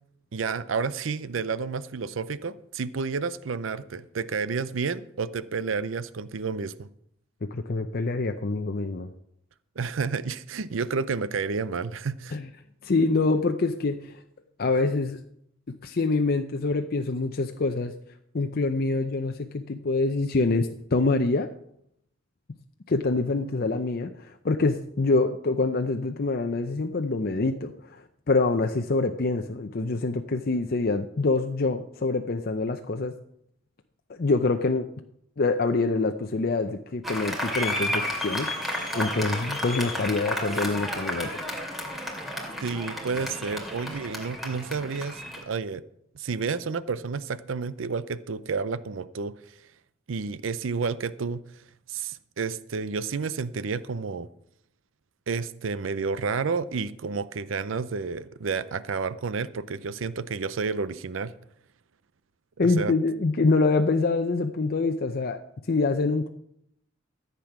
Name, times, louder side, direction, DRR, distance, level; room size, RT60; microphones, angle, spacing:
voice 1, 0.3-6.9 9.8-12.4 42.6-45.8 46.1-49.3 50.1-51.4 51.9-54.3 55.3-61.3 62.6-62.9, right 5 dB, 85° right, 16 dB, 0.5 m, -30 dB
voice 2, 7.4-9.1 12.3-12.5 12.8-14.2 14.6-15.2 15.8-17.9 18.3-21.5 22.9-33.1 34.1-34.9 35.4-41.5 62.6-65.4 65.7-66.3, left 3 dB, 50° left, 6 dB, 0.6 m, -25 dB
Applause, 37.0-45.4, left 1 dB, ahead, 2.6 m, -32 dB
14.0 x 8.3 x 6.0 m, 0.72 s
head